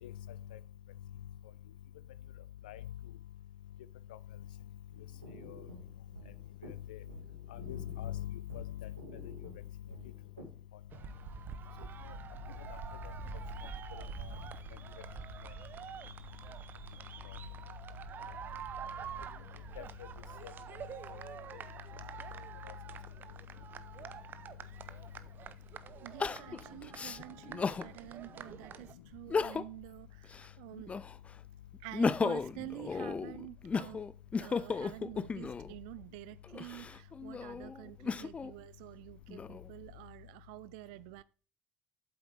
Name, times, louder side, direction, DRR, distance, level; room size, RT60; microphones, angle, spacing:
sound 1, 4.9-10.6, right 2 dB, 90° right, 2.0 m, -52 dB
voice 1, 6.6-7.0 7.5-8.9 19.8-19.9 20.4-20.5, left 11 dB, 75° left, 0.6 m, -41 dB
sound 2, 10.9-28.9, right 8 dB, 45° right, 0.8 m, -47 dB
Crying sobbing, 24.8-24.9 26.2-27.9 28.4-28.5 29.2-29.9 30.2-31.3 31.7-35.7 36.4-38.5 39.1-39.9, left 5 dB, 25° left, 0.5 m, -35 dB
voice 2, 26.0-31.0 31.8-34.0 34.3-41.2, right 21 dB, 70° right, 0.4 m, -48 dB
8.5 x 7.7 x 3.3 m
figure-of-eight pair, 60°, 5 cm